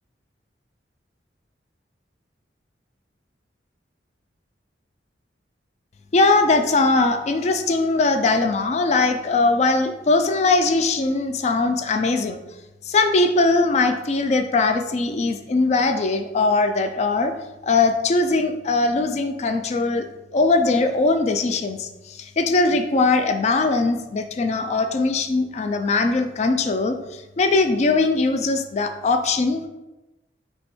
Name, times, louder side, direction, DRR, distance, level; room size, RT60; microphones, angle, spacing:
voice 1, 6.1-12.4 12.9-17.3 17.6-29.7, left 3 dB, 40° left, 7 dB, 0.3 m, -20 dB
5.2 x 3.2 x 3.1 m, 1.0 s
head